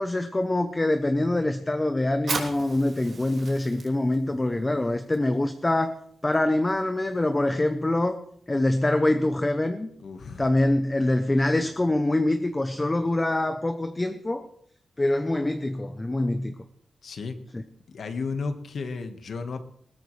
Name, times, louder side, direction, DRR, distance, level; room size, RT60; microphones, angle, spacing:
voice 1, 0.0-8.2 8.5-9.9 10.4-14.5 15.0-16.5 17.5-17.6, left 1 dB, 15° left, 8 dB, 0.7 m, -25 dB
Fire, 2.1-9.3, right 4 dB, 55° right, 3.0 m, -40 dB
voice 2, 10.0-10.5 17.0-17.4 17.9-19.6, left 4 dB, 65° left, 7 dB, 1.5 m, -33 dB
20.5 x 17.0 x 3.3 m, 0.67 s
wide cardioid pair, 160°, 0 cm